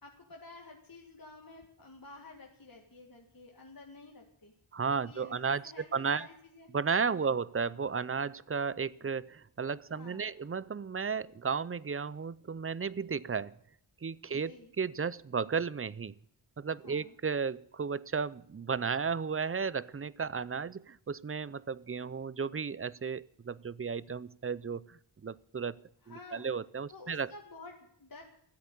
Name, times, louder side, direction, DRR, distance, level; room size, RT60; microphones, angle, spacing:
voice 1, 0.0-4.5 4.9-6.7 7.0-7.4 10.0-10.3 14.3-14.7 16.8-17.2 26.0-26.5 26.9-28.2, left 3 dB, 45° left, 0 dB, 2.0 m, -51 dB
voice 2, 4.7-6.3 6.7-13.6 14.0-16.1 16.6-25.8 26.1-27.3, right 5 dB, 30° right, 20 dB, 0.5 m, -34 dB
13.5 x 8.4 x 9.8 m, 0.65 s
wide cardioid pair, 60°, 47 cm